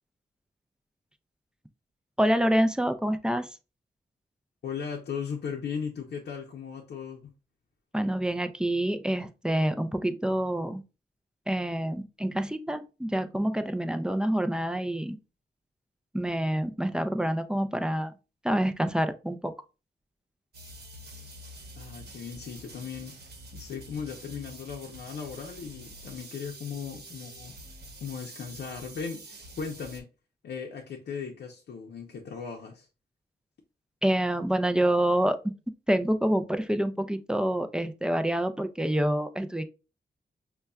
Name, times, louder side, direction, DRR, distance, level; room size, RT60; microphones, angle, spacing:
voice 1, 2.2-3.5 7.9-10.8 11.5-15.2 16.1-18.1 18.4-19.5 34.0-35.5 35.9-39.6, right 1 dB, 5° right, 0.3 m, -27 dB
voice 2, 4.6-7.3 21.8-23.2 23.5-27.5 28.0-30.1 30.4-32.9, left 6 dB, 80° left, 0.6 m, -37 dB
sound 1, 20.5-30.0, right 2 dB, 70° right, 0.9 m, -47 dB
5.3 x 2.2 x 2.3 m
wide cardioid pair, 95°, 17 cm